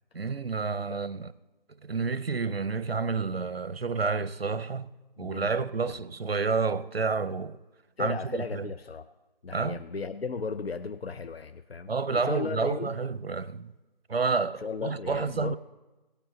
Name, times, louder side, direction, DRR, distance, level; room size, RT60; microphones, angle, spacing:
voice 1, 0.1-1.3 1.8-4.9 5.2-7.6 8.0-8.7 9.5-9.8 11.9-13.7 14.1-15.6, right 4 dB, 80° right, 0.7 m, -29 dB
voice 2, 5.2-5.9 8.0-9.1 9.4-13.0 14.6-15.6, left 5 dB, 85° left, 0.6 m, -36 dB
18.0 x 9.1 x 4.0 m
figure-of-eight pair, 175°, 30 cm